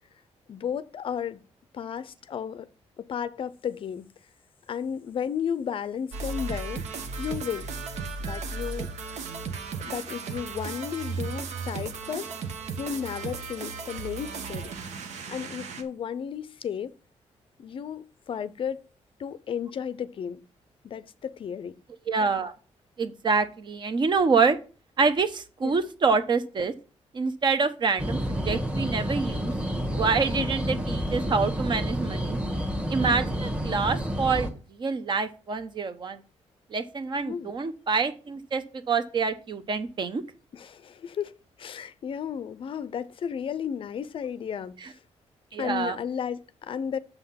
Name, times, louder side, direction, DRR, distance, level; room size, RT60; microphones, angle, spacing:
voice 1, 0.5-1.4 1.7-2.7 3.0-4.1 4.7-6.8 7.2-7.7 8.2-8.9 9.8-12.3 12.8-14.7 15.3-16.9 17.6-18.8 19.2-20.4 20.8-21.7 25.6-25.8 30.4-30.5 37.3-37.5 40.5-41.3 41.6-45.0 45.6-47.0, left 8 dB, 50° left, 0.5 m, -33 dB
sound 1, 6.1-15.8, right 4 dB, 80° right, 1.1 m, -35 dB
voice 2, 22.1-22.5 23.0-24.6 25.0-26.7 27.1-29.5 29.9-32.4 32.9-36.2 36.7-40.2 44.8-44.9 45.5-46.0, right 4 dB, 40° right, 0.9 m, -26 dB
sound 2, 28.0-34.5, equal, 10° right, 1.3 m, -29 dB
7.0 x 5.7 x 5.7 m
wide cardioid pair, 150°, 12 cm